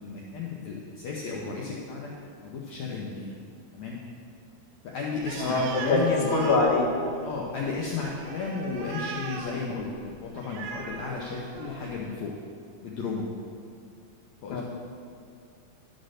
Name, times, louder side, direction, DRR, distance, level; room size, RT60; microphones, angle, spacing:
voice 1, 0.0-2.1 2.4-3.3 3.7-4.0 4.8-6.3 7.2-12.3 12.8-13.3 14.4-14.6, left 4 dB, 80° left, -3 dB, 1.6 m, -34 dB
Animal, 5.2-11.9, right 4 dB, 80° right, 2.6 m, -38 dB
voice 2, 5.9-6.9 14.5-14.6, left 3 dB, 55° left, -3 dB, 1.3 m, -23 dB
12.0 x 4.2 x 6.5 m, 2.3 s
omnidirectional pair, 4.4 m